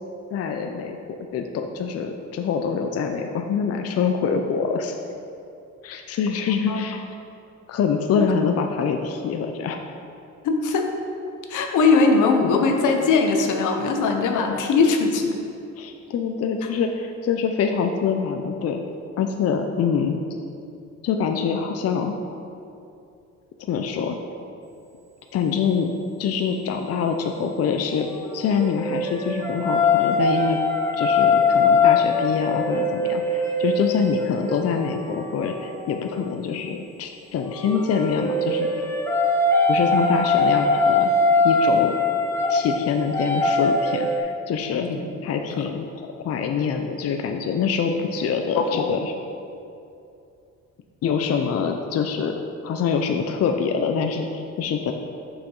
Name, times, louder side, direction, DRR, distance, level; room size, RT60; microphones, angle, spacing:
voice 1, 0.3-1.0 1.3-5.0 5.8-7.0 7.7-9.8 15.8-18.8 19.2-20.2 21.0-22.1 23.6-24.2 25.3-25.9 26.2-30.6 30.9-38.9 39.7-41.1 41.4-41.9 42.5-44.9 45.2-49.1 51.0-52.3 52.6-54.9, left 6 dB, 55° left, 5 dB, 0.5 m, -25 dB
voice 2, 6.5-6.8 8.1-8.2 10.4-10.9 11.5-15.4 44.8-45.0 45.5-45.6 48.6-48.8, left 4 dB, 80° left, 4 dB, 0.8 m, -20 dB
sound 1, 28.0-36.2 37.4-44.2, left 3 dB, 10° left, 1.0 m, -22 dB
6.7 x 5.9 x 3.8 m, 2.6 s
cardioid pair, 90°, 30 cm